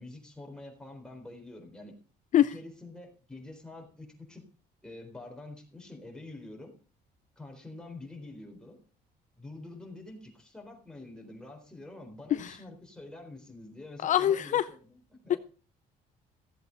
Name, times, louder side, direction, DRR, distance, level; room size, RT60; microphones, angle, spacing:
voice 1, 0.0-1.9 2.5-4.4 4.8-6.7 7.4-8.8 9.4-15.4, left 2 dB, 5° left, 1 dB, 4.0 m, -46 dB
voice 2, 14.0-14.7 15.3-15.4, left 11 dB, 50° left, 14 dB, 0.5 m, -24 dB
15.0 x 7.9 x 5.2 m, 0.38 s
cardioid pair, 110°, 17 cm